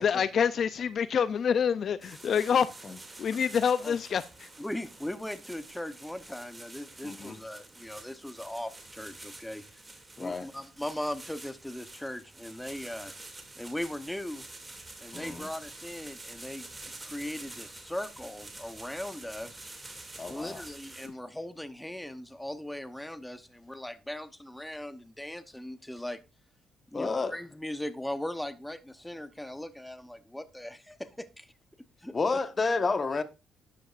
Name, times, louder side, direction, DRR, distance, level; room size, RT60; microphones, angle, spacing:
voice 1, 0.0-2.7 3.2-4.5, left 7 dB, 55° left, 0.5 m, -26 dB
sound 1, 2.0-21.1, right 2 dB, 20° right, 2.5 m, -48 dB
voice 2, 4.6-9.6 10.2-13.1 13.6-14.4 15.0-16.7 17.0-19.7 20.3-26.2 26.9-31.5 32.0-32.1, left 1 dB, 5° left, 0.9 m, -39 dB
voice 3, 7.0-7.4 10.2-10.5 15.1-15.5 20.2-20.6 26.9-27.3 32.1-33.2, left 4 dB, 35° left, 1.2 m, -30 dB
12.0 x 10.0 x 2.5 m
cardioid pair, 90°, 0 cm